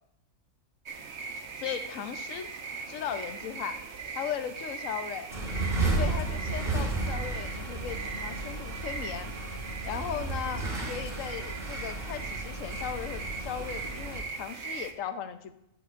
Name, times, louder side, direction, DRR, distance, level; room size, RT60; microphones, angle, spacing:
sound 1, 0.9-14.9, right 4 dB, 60° right, 1.2 m, -40 dB
voice 1, 1.6-2.6 2.9-3.8 4.1-5.3 5.9-9.3 9.8-15.5, left 8 dB, 75° left, 10 dB, 1.1 m, -37 dB
sound 2, 5.3-14.2, right 2 dB, 45° right, 4.0 m, -33 dB
12.5 x 10.0 x 2.5 m, 0.83 s
omnidirectional pair, 1.4 m